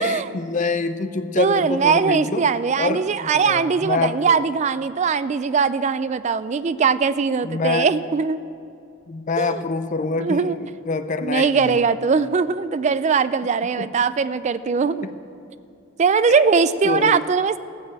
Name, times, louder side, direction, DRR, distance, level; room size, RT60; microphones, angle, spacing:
voice 1, 0.0-2.4 2.8-4.4 7.4-7.9 9.1-11.8 13.8-13.9 15.0-15.1 16.5-17.2, left 3 dB, 35° left, 11 dB, 0.5 m, -26 dB
voice 2, 1.4-8.4 9.4-9.6 10.2-10.6 11.2-15.1 16.0-17.6, right 5 dB, 35° right, 15 dB, 0.3 m, -20 dB
15.0 x 6.7 x 8.9 m, 2.5 s
head